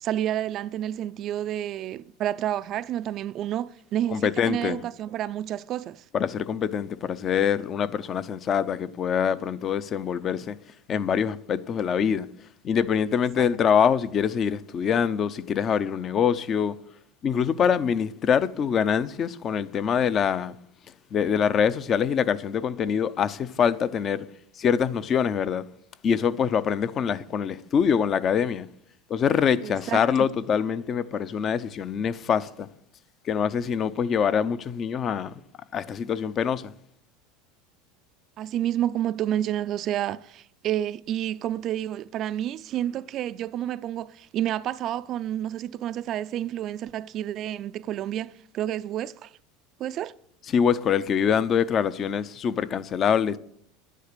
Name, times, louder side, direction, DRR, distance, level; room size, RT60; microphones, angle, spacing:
voice 1, 0.0-6.0 13.1-13.5 29.6-30.0 38.4-49.3 49.8-50.1, right 11 dB, 45° right, 0.4 m, -30 dB
voice 2, 4.1-4.8 6.1-10.6 10.9-12.3 12.6-16.8 17.2-20.6 21.1-24.3 24.6-25.6 26.0-28.7 29.1-32.7 33.2-35.3 35.7-36.7 50.5-53.4, left 7 dB, 35° left, 0.6 m, -24 dB
11.0 x 10.0 x 6.8 m
supercardioid pair, 120°, 0 cm